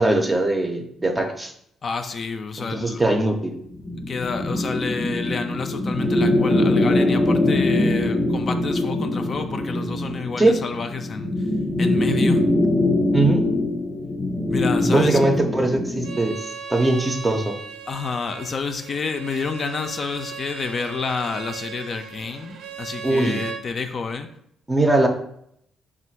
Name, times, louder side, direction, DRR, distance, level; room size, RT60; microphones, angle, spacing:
voice 1, 0.0-1.5 2.6-3.6 10.4-10.5 13.1-13.4 14.8-16.4 16.7-17.5 23.0-23.4 24.7-25.1, right 2 dB, 20° right, 4 dB, 0.5 m, -20 dB
voice 2, 1.8-3.0 4.1-11.5 11.8-12.4 14.5-15.2 17.9-24.3, left 5 dB, 45° left, 7 dB, 0.4 m, -29 dB
sound 1, 3.8-16.2, left 1 dB, 15° left, 0.7 m, -22 dB
Bowed string instrument, 16.0-23.6, right 6 dB, 75° right, 0.4 m, -37 dB
3.4 x 2.4 x 4.5 m, 0.71 s
cardioid pair, 90°, 0 cm